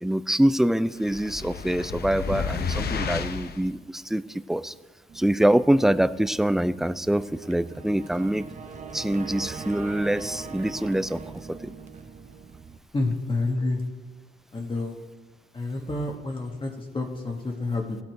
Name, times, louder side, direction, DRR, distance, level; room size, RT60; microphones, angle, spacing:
voice 1, 0.0-4.7 5.1-8.5 8.9-11.2 11.5-11.7, right 1 dB, ahead, 15 dB, 0.4 m, -24 dB
sound 1, 1.0-3.6, left 5 dB, 50° left, 0.9 m, -31 dB
sound 2, 5.1-12.8, right 5 dB, 35° right, 0.9 m, -42 dB
voice 2, 12.9-13.8 14.5-15.0 15.5-18.0, left 2 dB, 25° left, 0 dB, 1.5 m, -29 dB
16.5 x 9.3 x 4.6 m, 1.3 s
cardioid pair, 90°, 20 cm